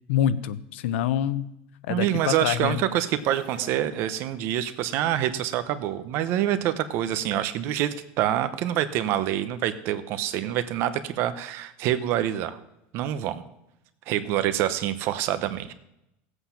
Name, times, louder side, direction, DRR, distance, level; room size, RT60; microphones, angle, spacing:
voice 1, 0.1-1.5 1.9-2.8, left 10 dB, 85° left, 15 dB, 0.7 m, -26 dB
voice 2, 1.9-12.6 12.9-13.4 14.1-15.7, right 12 dB, 40° right, 12 dB, 0.8 m, -26 dB
sound 1, 3.1-5.2, right 7 dB, 60° right, 2.1 m, -48 dB
17.0 x 8.0 x 5.8 m, 0.86 s
supercardioid pair, 175°, 6 cm